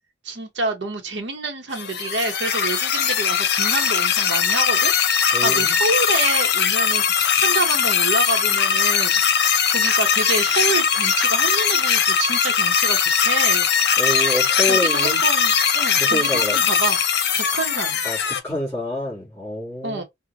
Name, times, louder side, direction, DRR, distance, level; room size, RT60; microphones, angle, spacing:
voice 1, 0.2-4.9 5.2-9.2 9.7-13.7 14.7-17.0 17.3-18.0 19.8-20.0, right 3 dB, 70° right, 0.8 m, -27 dB
sound 1, 1.7-18.4, left 7 dB, 60° left, 0.7 m, -20 dB
voice 2, 5.3-5.8 14.0-15.2 15.9-16.7 18.0-20.0, left 1 dB, 15° left, 2.7 m, -27 dB
5.0 x 2.1 x 2.7 m
head